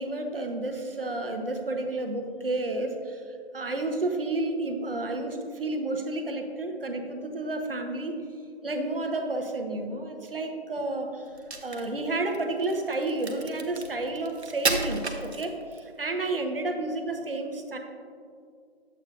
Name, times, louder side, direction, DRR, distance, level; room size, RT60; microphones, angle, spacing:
voice 1, 0.0-8.2 8.6-11.2 11.6-17.8, right 2 dB, 60° right, 4 dB, 1.0 m, -31 dB
Crack, 11.3-15.9, right 3 dB, 90° right, 1.0 m, -33 dB
9.5 x 8.1 x 2.6 m, 2.2 s
figure-of-eight pair, 170°, 32 cm